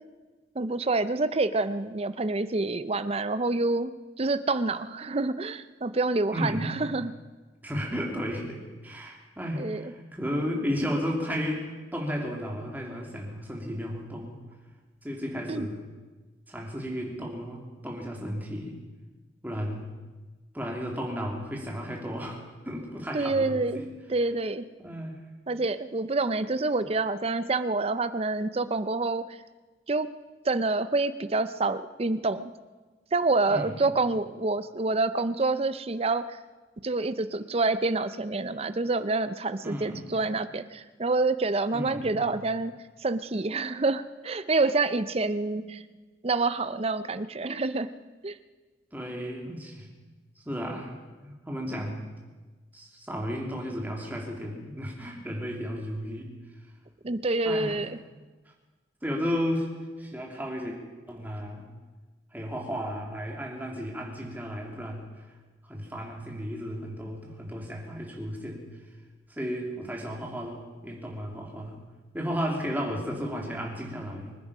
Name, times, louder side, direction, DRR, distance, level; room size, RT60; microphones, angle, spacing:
voice 1, 0.6-3.9 4.2-7.1 9.6-9.8 15.5-15.7 23.1-23.8 24.1-24.7 25.5-29.2 29.9-30.1 30.4-32.5 33.1-36.4 36.8-42.7 43.0-45.8 46.2-47.9 48.2-48.4 57.0-58.0, right 3 dB, 35° right, 13 dB, 0.6 m, -27 dB
voice 2, 6.3-6.8 7.6-14.4 15.0-15.8 16.5-18.8 19.4-19.9 20.5-22.4 22.6-23.9 24.8-25.2 33.5-33.8 39.6-40.1 41.7-42.2 45.5-45.6 48.9-49.9 50.4-52.1 52.7-56.3 57.4-57.8 59.0-59.7 60.0-60.8 61.1-61.7 62.3-65.1 65.6-68.7 69.3-71.8 72.1-74.4, equal, 10° right, -1 dB, 2.7 m, -34 dB
24.5 x 10.0 x 5.5 m, 1.3 s
head